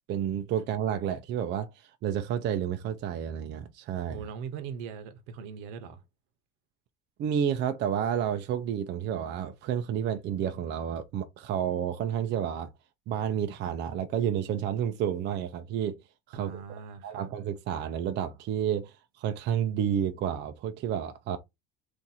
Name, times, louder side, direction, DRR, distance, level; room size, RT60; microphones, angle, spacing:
voice 1, 0.1-4.2 7.2-12.7 13.1-16.0 16.3-16.6 17.0-21.4, right 9 dB, 40° right, 0.4 m, -30 dB
voice 2, 4.1-6.0 16.3-17.3, right 7 dB, 70° right, 0.8 m, -40 dB
2.8 x 2.5 x 3.9 m
supercardioid pair, 125°, 29 cm